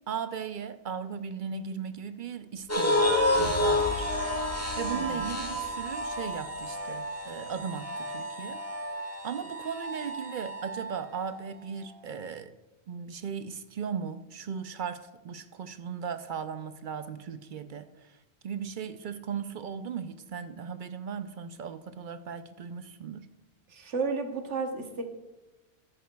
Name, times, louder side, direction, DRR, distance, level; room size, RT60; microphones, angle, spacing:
voice 1, 0.0-4.1 4.8-8.6 9.2-12.5 12.9-23.3, right 7 dB, 60° right, 11 dB, 0.6 m, -37 dB
sound 1, 2.7-7.2, left 5 dB, 50° left, 0.5 m, -42 dB
sound 2, 2.7-11.1, left 1 dB, 15° left, 1.3 m, -30 dB
voice 2, 4.9-5.3 23.7-25.0, right 4 dB, 80° right, 4 dB, 1.4 m, -33 dB
13.5 x 10.5 x 2.3 m, 1.1 s
omnidirectional pair, 1.2 m